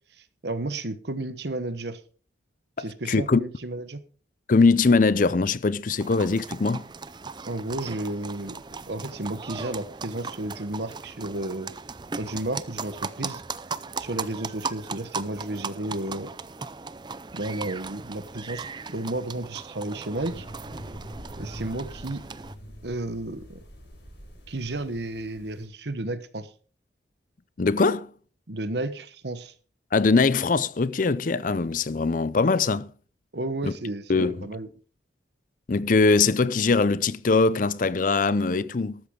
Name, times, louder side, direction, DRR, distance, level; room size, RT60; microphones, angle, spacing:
voice 1, 0.1-2.0 2.8-4.0 7.4-11.7 12.2-13.4 14.0-16.3 17.3-20.5 21.4-22.2 22.8-23.6 24.5-26.5 28.5-29.5 33.3-34.7, right 2 dB, 60° right, 1.2 m, -32 dB
voice 2, 3.1-3.4 4.5-6.8 27.6-28.1 29.9-32.9 34.1-34.4 35.7-39.0, left 4 dB, 45° left, 0.5 m, -21 dB
sound 1, 6.0-22.5, right 4 dB, 25° right, 0.5 m, -38 dB
sound 2, 20.2-25.6, equal, 75° left, 6.3 m, -44 dB
13.5 x 13.0 x 3.8 m
head